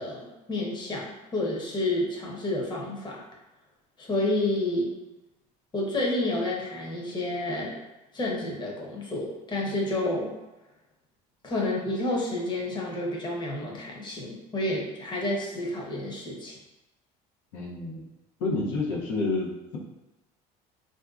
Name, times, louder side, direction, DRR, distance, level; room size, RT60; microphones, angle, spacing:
voice 1, 0.0-3.2 4.0-4.9 5.7-7.7 8.1-10.3 11.4-16.6, left 1 dB, 25° left, -2 dB, 0.8 m, -30 dB
voice 2, 17.5-18.1 18.4-19.8, left 3 dB, 85° left, -3 dB, 0.8 m, -29 dB
3.4 x 2.6 x 2.4 m, 1.1 s
supercardioid pair, 100°, 18 cm